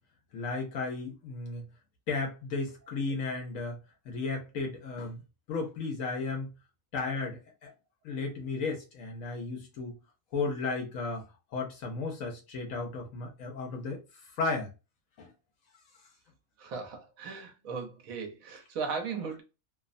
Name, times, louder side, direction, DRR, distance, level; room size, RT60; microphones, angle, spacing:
voice 1, 0.3-1.6 2.1-3.8 4.1-5.2 5.5-6.5 6.9-7.7 8.0-10.0 10.3-11.2 11.5-14.0 14.4-14.7 15.2-15.3, left 3 dB, 80° left, 1.1 m, -34 dB
voice 2, 16.6-19.4, right 5 dB, 85° right, 1.2 m, -37 dB
2.9 x 2.0 x 2.5 m
omnidirectional pair, 1.4 m